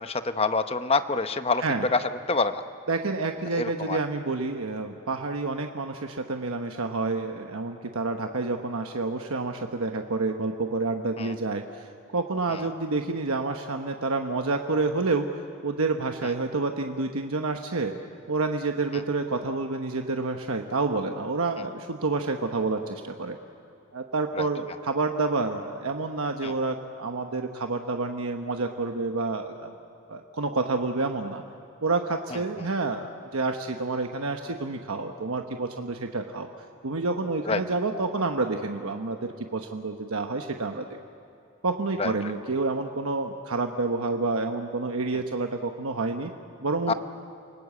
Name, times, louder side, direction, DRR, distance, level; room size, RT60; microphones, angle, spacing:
voice 1, 0.0-2.0 2.3-2.6 3.5-4.0 11.2-11.3 12.5-12.6 24.4-24.5 26.4-26.5 32.3-32.7 37.5-37.6 42.0-42.1 46.9-47.0, left 3 dB, 25° left, 10 dB, 0.8 m, -27 dB
voice 2, 2.9-15.3 15.6-17.9 18.3-23.4 23.9-29.7 30.1-31.4 31.8-36.5 36.8-40.9 41.6-46.3 46.6-46.9, right 3 dB, 80° right, 4 dB, 1.1 m, -29 dB
28.5 x 19.0 x 8.4 m, 2.7 s
head